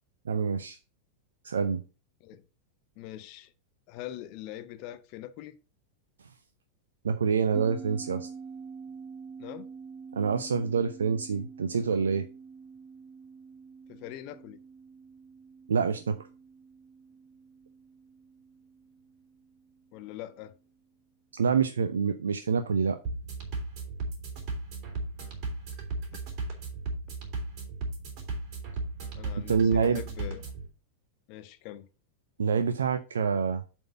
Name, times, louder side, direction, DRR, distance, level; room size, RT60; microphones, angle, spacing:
voice 1, 0.3-0.8 1.4-1.8 7.0-8.3 10.1-12.3 15.7-16.3 21.3-23.0 29.5-30.0 32.4-33.6, right 6 dB, 70° right, 0.5 m, -26 dB
voice 2, 3.0-3.5 3.9-5.6 9.4-9.7 13.9-14.6 19.9-20.5 29.2-30.4 31.3-31.9, left 13 dB, 45° left, 0.6 m, -42 dB
sound 1, 7.5-20.3, right 5 dB, 20° right, 0.6 m, -47 dB
sound 2, 23.0-30.7, right 3 dB, 40° right, 3.4 m, -36 dB
7.7 x 4.5 x 5.4 m
figure-of-eight pair, 90°, 0 cm